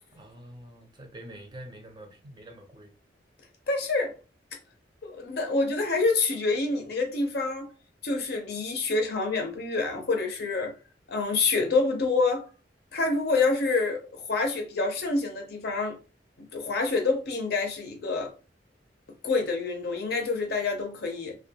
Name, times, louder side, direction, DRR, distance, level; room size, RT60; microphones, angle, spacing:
voice 1, 0.2-2.9, right 1 dB, 25° right, 0.5 m, -46 dB
voice 2, 3.7-4.1 5.0-7.7 8.0-10.7 11.1-12.5 12.9-16.0 16.4-18.3 19.2-21.4, left 3 dB, 60° left, 0.5 m, -27 dB
2.2 x 2.2 x 2.7 m
head